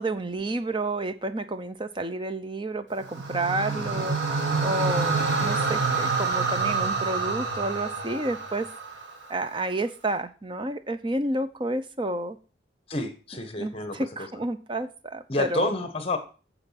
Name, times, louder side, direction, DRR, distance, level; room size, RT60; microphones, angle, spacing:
voice 1, 0.0-8.7 9.3-12.4 13.6-15.7, right 2 dB, 25° right, 0.7 m, -30 dB
sound 1, 3.0-9.3, right 4 dB, 75° right, 1.9 m, -27 dB
voice 2, 3.6-4.1 12.9-14.3 15.3-16.2, left 2 dB, 30° left, 1.3 m, -30 dB
8.9 x 7.2 x 5.8 m
head